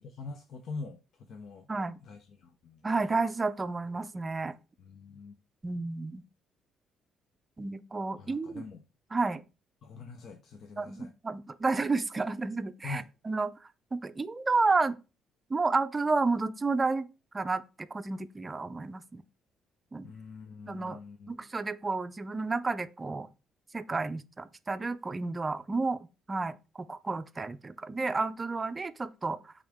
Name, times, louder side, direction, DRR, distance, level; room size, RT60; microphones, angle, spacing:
voice 1, 0.0-1.7 2.0-2.9 4.8-5.4 8.2-8.8 9.8-11.1 12.8-13.1 20.0-21.3, left 4 dB, 60° left, 0.8 m, -44 dB
voice 2, 2.8-4.5 5.6-6.2 7.6-8.6 9.1-9.4 10.8-13.5 13.9-14.9 15.5-17.1 17.3-19.2 19.9-20.1 20.7-21.0 21.3-23.3 23.7-26.0 26.3-29.5, right 3 dB, 20° right, 0.5 m, -31 dB
8.7 x 3.7 x 3.6 m
cardioid pair, 115°, 0 cm